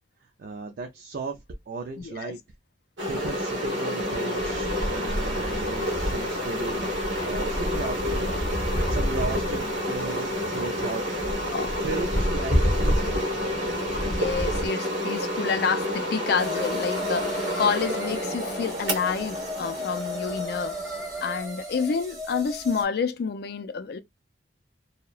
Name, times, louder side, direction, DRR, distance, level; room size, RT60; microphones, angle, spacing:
voice 1, 0.4-2.4 3.1-8.3 8.9-11.0 11.8-13.3 21.6-21.7, right 3 dB, 55° right, 0.4 m, -35 dB
voice 2, 2.0-2.3 11.5-11.7 14.1-20.7 21.2-24.0, left 5 dB, 55° left, 0.4 m, -28 dB
sound 1, 3.0-21.4, equal, 85° right, 1.1 m, -30 dB
sound 2, 4.3-14.7, equal, 10° left, 0.7 m, -30 dB
sound 3, 16.4-22.8, left 1 dB, 20° right, 0.9 m, -35 dB
2.8 x 2.1 x 2.3 m
head